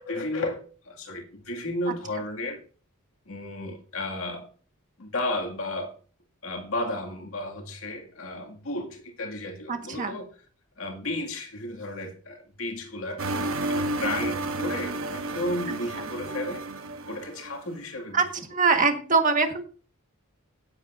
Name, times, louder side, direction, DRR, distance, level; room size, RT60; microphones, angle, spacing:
voice 1, 0.0-2.6 3.3-4.5 5.0-6.0 6.4-10.3 10.8-13.2 13.6-16.7 17.1-18.3, left 1 dB, 75° left, 2.2 m, -33 dB
voice 2, 9.7-10.2 18.1-18.2 18.5-19.6, right 4 dB, 40° right, 1.5 m, -23 dB
sound 1, 13.2-17.6, right 2 dB, 70° right, 1.0 m, -31 dB
16.5 x 8.1 x 2.6 m
head